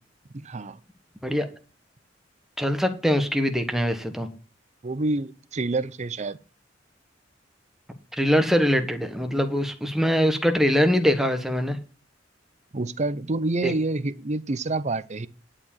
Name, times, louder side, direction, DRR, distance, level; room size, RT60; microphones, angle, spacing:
voice 1, 0.3-0.8 4.8-6.4 12.7-15.3, right 2 dB, 40° right, 0.6 m, -28 dB
voice 2, 2.6-4.3 8.2-11.8 13.6-13.7, equal, ahead, 1.3 m, -23 dB
11.0 x 4.9 x 7.3 m
head